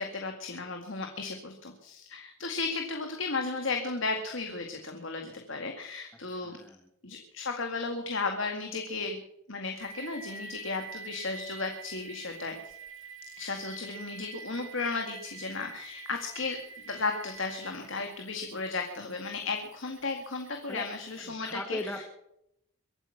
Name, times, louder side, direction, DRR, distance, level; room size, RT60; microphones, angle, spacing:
voice 1, 0.0-6.6 7.0-9.2 9.5-12.7 13.4-16.6 16.9-22.0, left 3 dB, 75° left, 4 dB, 2.0 m, -34 dB
voice 2, 6.3-6.9 20.7-20.9 21.2-22.0, left 1 dB, 10° left, 4 dB, 1.5 m, -39 dB
sound 1, 9.8-21.3, right 6 dB, 75° right, 2.3 m, -47 dB
23.5 x 8.9 x 5.9 m, 0.77 s
head